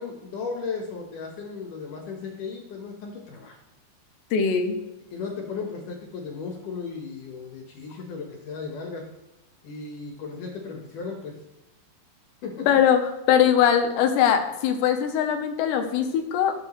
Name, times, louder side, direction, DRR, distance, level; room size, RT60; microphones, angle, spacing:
voice 1, 0.0-3.6 5.1-9.0 9.6-11.4 12.4-12.7, left 5 dB, 60° left, 1 dB, 2.4 m, -35 dB
voice 2, 4.3-4.8 12.7-13.0 13.3-16.5, left 8 dB, 90° left, 6 dB, 3.2 m, -21 dB
18.5 x 6.6 x 3.2 m, 0.95 s
omnidirectional pair, 5.0 m